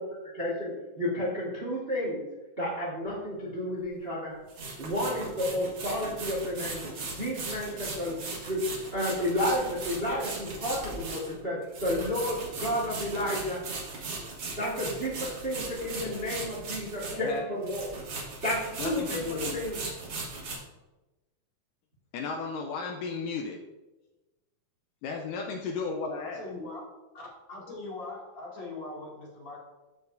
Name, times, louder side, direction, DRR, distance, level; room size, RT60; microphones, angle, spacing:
voice 1, 0.3-2.2 2.6-4.3 4.8-6.8 7.1-8.2 8.4-13.6 14.6-17.9 18.4-18.6 18.8-19.8, left 1 dB, 85° right, -4 dB, 0.5 m, -31 dB
sound 1, 3.0-3.1 4.5-17.4 17.6-20.6, right 3 dB, 50° right, 2.0 m, -38 dB
voice 2, 17.1-17.4 18.8-19.6 22.1-23.6 25.0-26.4, left 4 dB, 80° left, 2 dB, 2.0 m, -34 dB
voice 3, 26.2-26.8 27.1-29.6, left 2 dB, 35° left, -5 dB, 2.7 m, -41 dB
14.5 x 4.8 x 2.6 m, 1.1 s
omnidirectional pair, 4.2 m